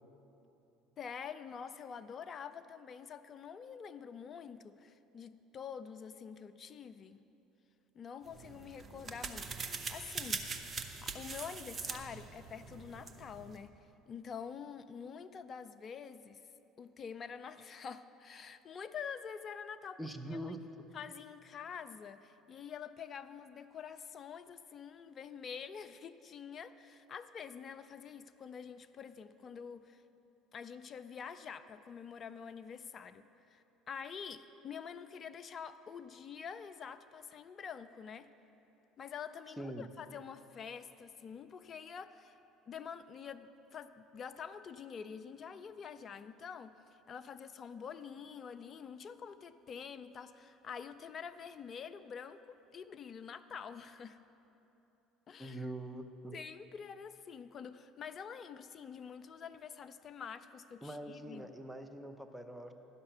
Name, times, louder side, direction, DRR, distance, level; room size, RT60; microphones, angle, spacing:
voice 1, 1.0-7.2 7.9-10.4 11.0-13.8 14.1-16.4 16.8-20.0 20.2-20.6 20.9-30.0 30.5-38.3 39.0-42.4 42.7-46.7 47.1-54.2 55.3-55.6 56.3-61.5, left 7 dB, 40° left, 12 dB, 0.4 m, -47 dB
sound 1, 8.3-13.6, right 4 dB, 35° right, 0.7 m, -43 dB
voice 2, 20.0-20.9 39.6-39.9 55.4-56.4 60.8-62.7, right 1 dB, 5° right, 7 dB, 0.7 m, -43 dB
11.0 x 5.6 x 6.6 m, 3.0 s
hypercardioid pair, 60°, 0 cm